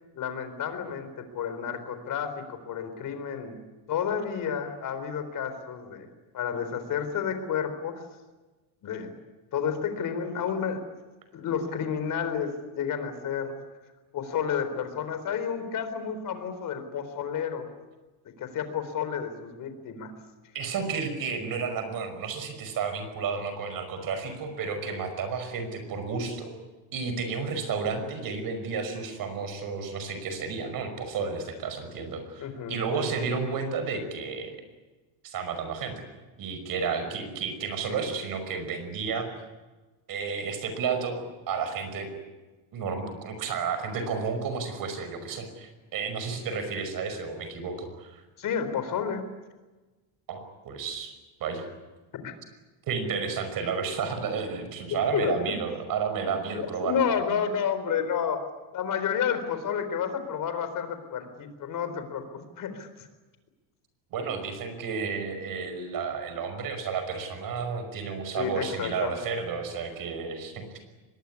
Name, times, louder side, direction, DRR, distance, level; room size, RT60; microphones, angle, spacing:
voice 1, 0.1-3.6 3.9-6.1 6.3-8.0 8.8-9.1 9.5-10.8 11.3-13.6 14.1-17.7 18.4-20.1 32.4-32.8 48.4-49.2 52.1-52.3 55.1-55.4 56.5-58.4 58.7-63.1 68.4-69.2, left 7 dB, 40° left, 9 dB, 4.1 m, -30 dB
voice 2, 20.5-26.5 26.9-34.6 35.2-36.0 36.4-39.3 40.1-42.1 42.7-48.2 50.3-51.7 52.9-57.1 64.1-70.6, right 5 dB, 45° right, 8 dB, 5.6 m, -32 dB
24.0 x 21.0 x 9.8 m, 1.2 s
cardioid pair, 150°, 49 cm